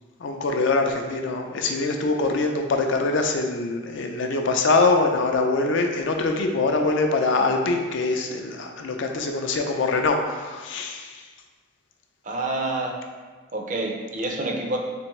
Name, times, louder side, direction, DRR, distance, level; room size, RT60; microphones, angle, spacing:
voice 1, 0.2-11.2, left 3 dB, 65° left, 3 dB, 0.4 m, -23 dB
voice 2, 12.2-13.0 13.5-14.8, right 2 dB, 40° right, 1 dB, 0.4 m, -27 dB
3.5 x 3.4 x 3.0 m, 1.4 s
head